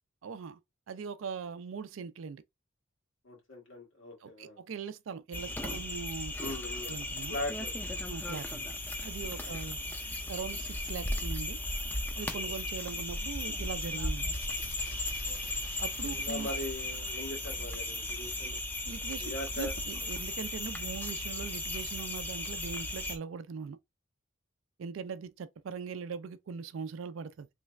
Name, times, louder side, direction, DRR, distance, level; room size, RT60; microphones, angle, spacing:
voice 1, 0.2-0.6 0.9-2.4 4.2-6.3 6.8-7.4 8.1-8.7 9.0-9.8 10.3-11.6 12.2-14.3 15.8-16.5 18.8-23.8 24.8-27.5, right 5 dB, 80° right, 0.4 m, -41 dB
voice 2, 3.2-4.6 6.4-7.0 7.3-7.7 9.5-9.6 12.3-12.5 15.2-15.5 16.1-18.6 19.2-19.7, left 1 dB, 85° left, 1.6 m, -40 dB
sound 1, 5.3-23.2, left 1 dB, 10° left, 0.4 m, -36 dB
sound 2, 14.3-18.2, left 3 dB, 60° left, 0.6 m, -49 dB
3.2 x 2.4 x 3.1 m
head